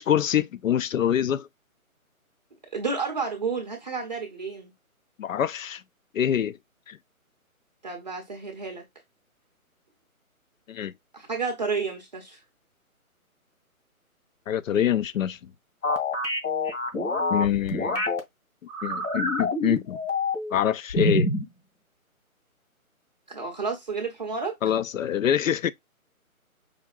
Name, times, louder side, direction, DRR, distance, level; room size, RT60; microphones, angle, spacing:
voice 1, 0.0-1.5 5.2-5.8 6.1-6.6 6.9-7.0 10.7-10.9 14.5-15.4 17.3-18.0 18.8-20.0 20.5-21.3 24.6-25.7, left 10 dB, 65° left, 0.5 m, -25 dB
voice 2, 2.7-4.7 7.8-8.8 11.1-12.4 23.3-24.6, right 4 dB, 30° right, 0.6 m, -31 dB
sound 1, 15.8-18.2 18.7-20.6 20.9-21.5, left 2 dB, 85° left, 2.1 m, -26 dB
5.0 x 2.7 x 2.3 m
figure-of-eight pair, 155°, 43 cm